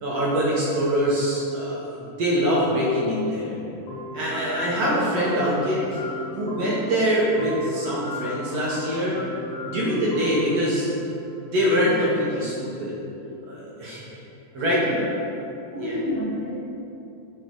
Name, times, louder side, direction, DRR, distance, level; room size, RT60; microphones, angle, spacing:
voice 1, 0.0-3.5 4.1-6.0 6.3-9.2 9.6-10.9 11.4-12.9 13.4-14.0 14.5-14.8 15.8-16.0, equal, 70° right, -6 dB, 1.6 m, -24 dB
sound 1, 3.8-11.7, left 2 dB, 55° left, 2.1 m, -37 dB
voice 2, 14.5-15.0 15.7-16.5, equal, 85° right, -7 dB, 0.7 m, -29 dB
5.3 x 4.7 x 4.6 m, 2.9 s
omnidirectional pair, 3.9 m